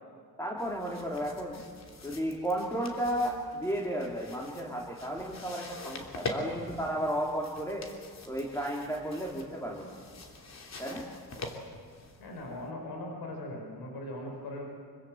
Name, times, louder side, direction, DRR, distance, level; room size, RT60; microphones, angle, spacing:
voice 1, 0.4-1.6 2.0-7.9 8.3-10.0 10.8-11.1, equal, 10° left, -2 dB, 3.0 m, -33 dB
sound 1, 0.6-12.7, left 3 dB, 45° left, 3.2 m, -44 dB
voice 2, 12.2-14.7, left 1 dB, 75° left, 1 dB, 5.7 m, -39 dB
25.5 x 24.5 x 7.8 m, 2.2 s
cardioid pair, 140°, 38 cm